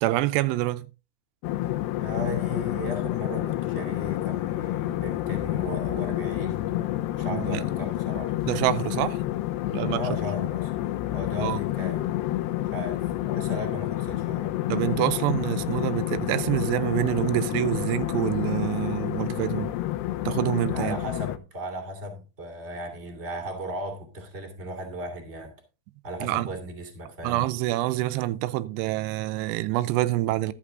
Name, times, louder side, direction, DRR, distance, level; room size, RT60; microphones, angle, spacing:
voice 1, 0.0-0.9 7.3-7.6 8.5-9.2 9.7-10.1 11.4-11.6 14.7-19.7 20.3-21.0 26.2-26.5 27.2-30.5, right 16 dB, 90° right, 2.8 m, -26 dB
sound 1, 1.4-21.4, left 15 dB, 85° left, 2.9 m, -29 dB
voice 2, 2.0-6.6 7.2-8.4 9.9-10.7 11.1-12.0 12.7-14.5 20.7-25.5 26.0-27.5, equal, 20° right, 2.3 m, -36 dB
12.0 x 8.2 x 3.7 m
omnidirectional pair, 4.8 m